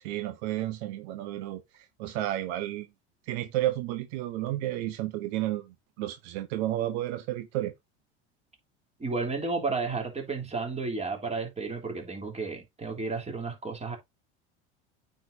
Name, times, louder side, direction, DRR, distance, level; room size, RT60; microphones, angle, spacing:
voice 1, 0.0-2.9 3.2-7.7, right 14 dB, 65° right, 1.0 m, -32 dB
voice 2, 9.0-14.0, right 4 dB, 20° right, 3.3 m, -32 dB
9.0 x 5.2 x 2.7 m
hypercardioid pair, 80°, 34 cm